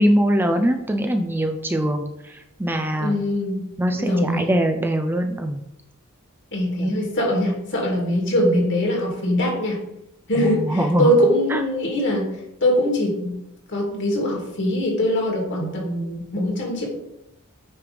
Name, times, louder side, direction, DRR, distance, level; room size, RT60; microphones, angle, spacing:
voice 1, 0.0-3.2 3.8-5.6 6.8-6.9 10.3-11.1 11.5-11.6, equal, 10° right, 5 dB, 0.4 m, -22 dB
voice 2, 3.0-3.6 4.0-4.5 6.5-9.8 10.3-12.3 12.6-13.4 13.7-16.9, equal, 55° left, -1 dB, 2.2 m, -22 dB
8.5 x 3.1 x 5.1 m, 0.86 s
head